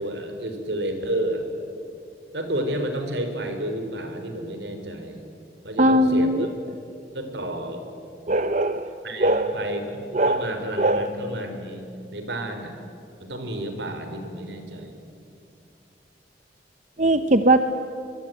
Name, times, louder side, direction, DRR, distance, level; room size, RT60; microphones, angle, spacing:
voice 1, 0.0-1.4 2.3-5.2 5.6-6.5 7.1-7.8 9.0-11.8 12.1-12.7 13.2-15.0, right 1 dB, 75° right, 6 dB, 3.8 m, -31 dB
voice 2, 5.8-6.5 8.3-8.9 9.2-9.6 10.1-10.5 10.8-11.1 17.0-17.6, right 1 dB, 40° right, 9 dB, 0.8 m, -20 dB
26.0 x 21.5 x 9.1 m, 2.5 s
head